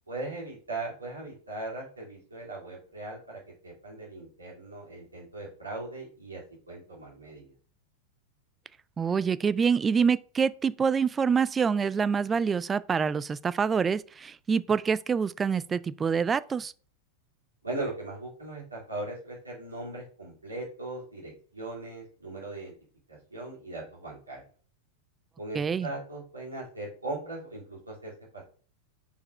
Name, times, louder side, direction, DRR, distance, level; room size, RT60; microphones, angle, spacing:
voice 1, 0.1-7.5 17.6-22.7 23.1-24.4 25.4-28.4, right 2 dB, 80° right, 2.6 m, -39 dB
voice 2, 9.0-16.7 25.5-25.9, right 6 dB, 20° right, 0.3 m, -26 dB
5.3 x 4.7 x 4.3 m
figure-of-eight pair, 90°, 0 cm